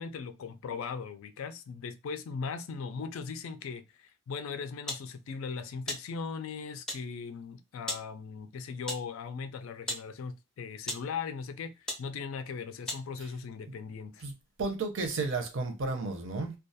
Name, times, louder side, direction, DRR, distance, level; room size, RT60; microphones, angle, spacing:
voice 1, 0.0-14.3, left 5 dB, 85° left, 0.3 m, -39 dB
sound 1, 4.9-5.1 5.9-6.1 6.9-7.1 7.9-8.1 8.9-9.1 9.9-10.1 10.8-11.1 11.9-12.1 12.9-13.1, left 1 dB, 5° left, 0.4 m, -36 dB
voice 2, 14.6-16.5, right 3 dB, 65° right, 0.6 m, -33 dB
2.3 x 2.2 x 2.6 m
head